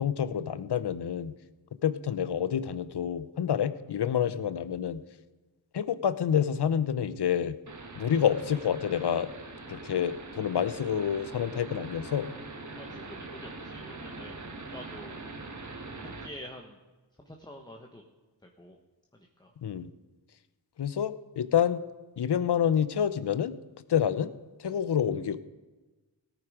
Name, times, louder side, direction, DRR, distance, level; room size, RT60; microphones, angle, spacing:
voice 1, 0.0-1.3 1.8-5.0 5.7-7.5 7.9-9.3 9.7-12.3 19.6-19.9 20.8-21.8 22.2-23.5 23.9-24.3 24.6-25.4, left 8 dB, 60° left, 14 dB, 0.8 m, -28 dB
sound 1, 7.7-16.3, right 3 dB, 40° right, 1.6 m, -43 dB
voice 2, 12.8-15.2 15.9-16.8 17.2-18.0 18.4-18.8 19.1-19.5, left 1 dB, 10° left, 2 dB, 1.2 m, -47 dB
17.5 x 9.4 x 5.0 m, 1.2 s
wide cardioid pair, 85°, 45 cm